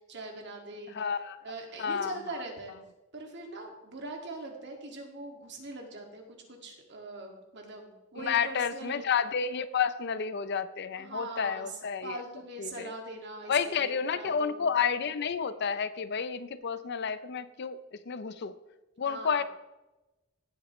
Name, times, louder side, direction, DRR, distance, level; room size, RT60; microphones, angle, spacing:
voice 1, 0.1-0.9 1.4-2.7 3.1-9.0 10.9-14.7 19.0-19.4, right 2 dB, 60° right, 2 dB, 2.1 m, -42 dB
voice 2, 0.9-1.4 1.8-2.4 8.2-12.2 12.6-12.9 13.5-17.8 18.1-18.5 19.0-19.4, left 6 dB, 55° left, 13 dB, 0.6 m, -30 dB
16.5 x 8.1 x 3.1 m, 1.0 s
head